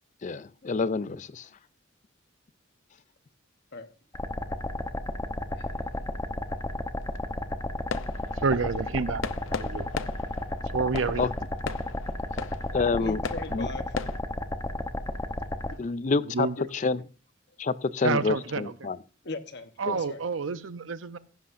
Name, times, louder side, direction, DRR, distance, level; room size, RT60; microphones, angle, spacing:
voice 1, 0.2-1.5 11.2-11.3 12.7-13.2 13.5-13.7 15.8-16.5 16.8-17.0 17.6-19.0 19.9-20.0, left 4 dB, 40° left, 0.4 m, -27 dB
sound 1, 4.1-15.7, left 1 dB, 15° left, 0.8 m, -33 dB
sound 2, 4.4-14.2, left 5 dB, 90° left, 0.6 m, -40 dB
voice 2, 8.3-9.2 9.5-9.9 10.7-11.3 16.3-16.6 18.0-18.7 19.8-21.2, right 4 dB, 90° right, 0.7 m, -29 dB
voice 3, 13.0-14.0 15.7-15.8 16.6-16.7 19.2-20.2, left 2 dB, 60° left, 1.1 m, -39 dB
15.5 x 11.0 x 2.6 m
head